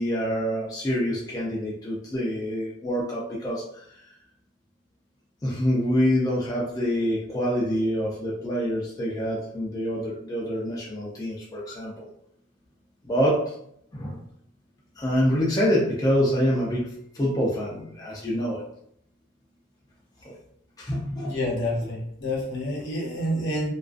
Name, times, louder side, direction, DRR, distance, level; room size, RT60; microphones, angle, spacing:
voice 1, 0.0-3.8 5.4-12.1 13.0-13.5 13.9-14.2 15.0-18.6 20.2-20.3 20.8-21.4, equal, 20° left, -5 dB, 0.4 m, -26 dB
voice 2, 21.2-23.7, left 1 dB, 60° left, -3 dB, 0.8 m, -28 dB
2.3 x 2.2 x 2.4 m, 0.71 s
head